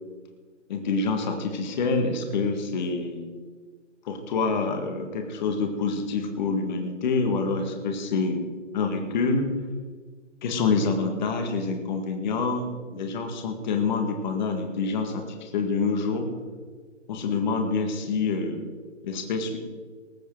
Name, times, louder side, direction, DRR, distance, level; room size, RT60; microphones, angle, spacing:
voice 1, 0.7-3.3 4.0-8.4 8.7-9.5 10.4-12.7 12.9-16.3 17.1-18.6 19.0-19.6, left 4 dB, 35° left, 4 dB, 1.9 m, -26 dB
20.0 x 8.3 x 4.7 m, 1.5 s
figure-of-eight pair, 135°, 37 cm